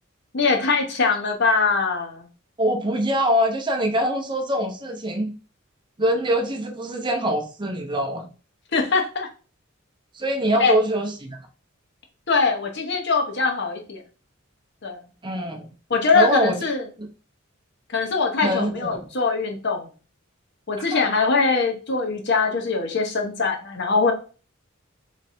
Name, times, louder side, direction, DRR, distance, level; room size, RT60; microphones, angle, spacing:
voice 1, 0.3-2.3 8.7-9.3 10.6-10.7 12.3-14.0 14.8-15.0 15.9-16.8 17.9-19.9 20.7-24.1, left 4 dB, 55° left, 3 dB, 1.0 m, -22 dB
voice 2, 2.6-5.3 6.0-8.3 10.1-11.4 15.2-15.7 16.1-16.6 17.0-17.1 18.4-19.0 20.8-21.0, equal, 20° right, 3 dB, 0.6 m, -24 dB
3.7 x 3.2 x 4.2 m, 0.36 s
head